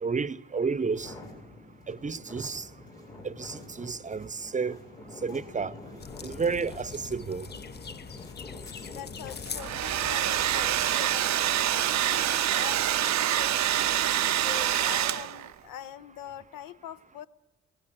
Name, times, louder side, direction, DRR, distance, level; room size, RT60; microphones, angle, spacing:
voice 1, 0.0-1.1 1.9-2.6 3.2-4.8 5.2-5.7 6.2-7.5, right 5 dB, 20° right, 0.8 m, -31 dB
sound 1, 0.9-9.6, left 2 dB, 85° left, 4.9 m, -47 dB
sound 2, 6.0-11.0, left 6 dB, 30° left, 0.7 m, -42 dB
voice 2, 8.8-17.3, left 11 dB, 70° left, 0.8 m, -43 dB
Domestic sounds home sounds, 9.5-15.5, right 12 dB, 50° right, 0.6 m, -26 dB
22.5 x 17.0 x 7.5 m
hypercardioid pair, 40°, 35 cm